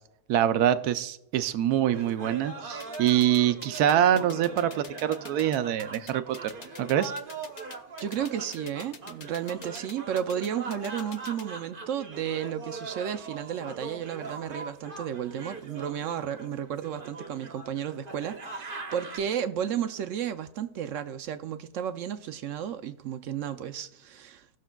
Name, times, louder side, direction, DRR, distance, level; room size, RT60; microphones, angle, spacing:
voice 1, 0.3-6.5 6.8-7.1, right 10 dB, 85° right, 1.1 m, -25 dB
sound 1, 1.9-19.2, right 3 dB, 40° right, 1.1 m, -41 dB
sound 2, 2.8-11.4, left 5 dB, 50° left, 0.5 m, -45 dB
sound 3, 4.1-7.5, left 1 dB, 20° left, 1.5 m, -49 dB
voice 2, 8.0-24.6, right 9 dB, 70° right, 0.9 m, -33 dB
17.5 x 6.4 x 2.2 m
omnidirectional pair, 1.6 m